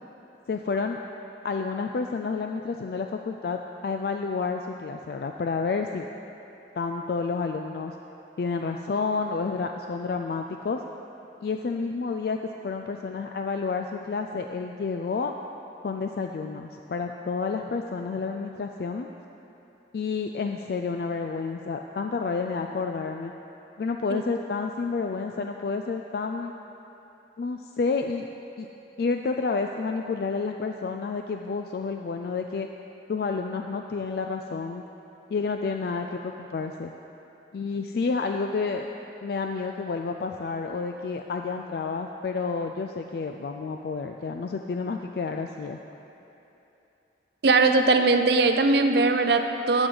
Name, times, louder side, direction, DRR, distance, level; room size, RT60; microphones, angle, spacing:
voice 1, 0.5-1.0 1.4-6.1 6.8-7.9 8.4-10.8 11.4-12.4 12.6-15.3 15.8-19.1 19.9-23.3 23.8-26.5 27.4-28.3 28.6-28.7 29.0-32.7 33.1-34.8 35.3-36.9 37.5-38.9 39.2-45.8, left 4 dB, 55° left, 4 dB, 0.3 m, -30 dB
voice 2, 47.4-49.9, right 3 dB, 65° right, 7 dB, 0.6 m, -20 dB
12.5 x 7.9 x 3.9 m, 3.0 s
head